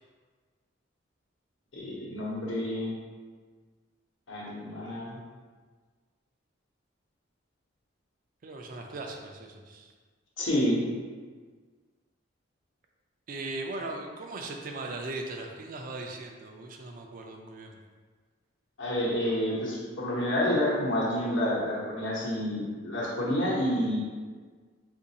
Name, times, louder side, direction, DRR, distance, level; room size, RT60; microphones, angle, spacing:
voice 1, 1.7-2.9 4.3-5.2 10.4-10.8 18.8-24.0, left 1 dB, 75° left, -6 dB, 1.0 m, -29 dB
voice 2, 8.4-9.9 13.3-17.8, right 2 dB, 45° right, 2 dB, 0.3 m, -38 dB
3.8 x 2.5 x 2.8 m, 1.5 s
head